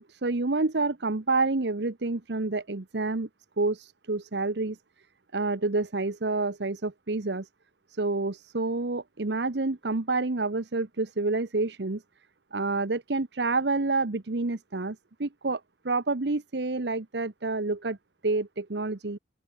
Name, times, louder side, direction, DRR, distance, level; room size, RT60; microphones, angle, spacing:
voice 1, 0.0-3.3 3.6-4.8 5.3-7.5 7.9-12.0 12.5-18.0 18.2-19.2, right 3 dB, 70° right, 1.0 m, -28 dB
open air
head